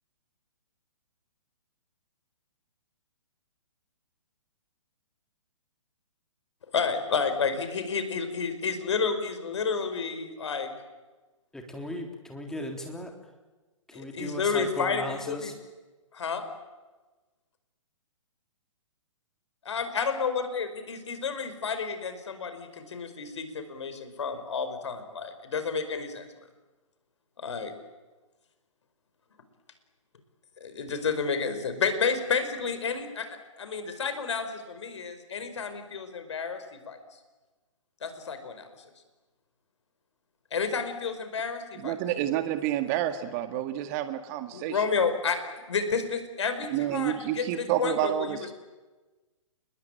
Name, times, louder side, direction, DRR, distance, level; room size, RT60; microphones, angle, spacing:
voice 1, 6.7-10.7 13.9-15.5 16.1-16.4 19.6-26.3 27.4-27.7 30.6-37.0 38.0-38.7 40.5-42.0 44.5-45.4 45.7-48.5, left 5 dB, 60° left, 9 dB, 5.2 m, -30 dB
voice 2, 11.5-13.1 13.9-15.6, left 1 dB, 5° left, 3 dB, 3.5 m, -37 dB
voice 3, 41.8-44.8 46.7-48.5, right 12 dB, 30° right, 9 dB, 1.9 m, -29 dB
30.0 x 21.0 x 9.0 m, 1.2 s
figure-of-eight pair, 125°, 17 cm